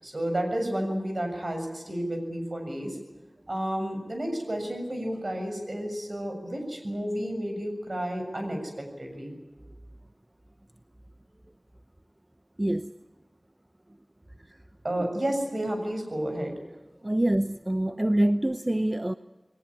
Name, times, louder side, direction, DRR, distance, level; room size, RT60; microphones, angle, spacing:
voice 1, 0.0-3.0 3.5-9.4 14.8-16.6, right 1 dB, 65° right, 4 dB, 7.0 m, -31 dB
voice 2, 12.6-12.9 17.0-19.1, right 1 dB, 35° right, 10 dB, 0.8 m, -25 dB
21.5 x 19.0 x 9.7 m, 1.2 s
wide cardioid pair, 45°, 0 cm